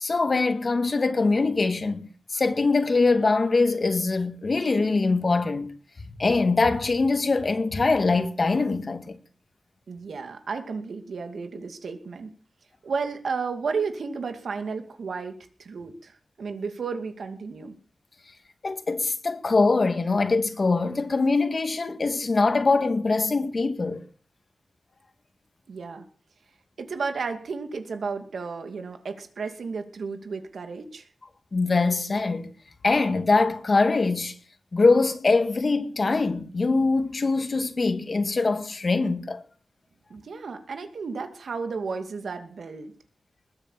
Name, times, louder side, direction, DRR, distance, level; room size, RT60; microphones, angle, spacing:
voice 1, 0.0-5.7 6.0-9.2 18.6-24.0 31.5-32.5 32.8-34.4 34.7-39.4, left 3 dB, 45° left, 1.9 m, -23 dB
voice 2, 9.9-12.3 12.8-17.8 25.7-26.1 26.8-31.1 40.1-42.9, right 5 dB, 80° right, 2.3 m, -33 dB
20.5 x 8.8 x 7.3 m
wide cardioid pair, 110°, 0 cm